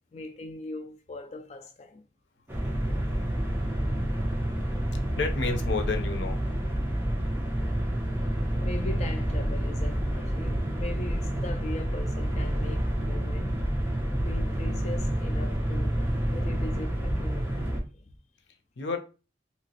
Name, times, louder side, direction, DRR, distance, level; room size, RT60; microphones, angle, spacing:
voice 1, 0.1-2.0 2.8-3.0 8.5-13.6 14.2-16.0 16.3-18.0, left 2 dB, 40° left, 0.3 m, -40 dB
sound 1, 2.5-17.8, right 1 dB, 15° right, 0.7 m, -28 dB
voice 2, 5.2-6.4 18.8-19.0, left 4 dB, 90° left, 0.6 m, -30 dB
2.9 x 2.9 x 2.8 m
head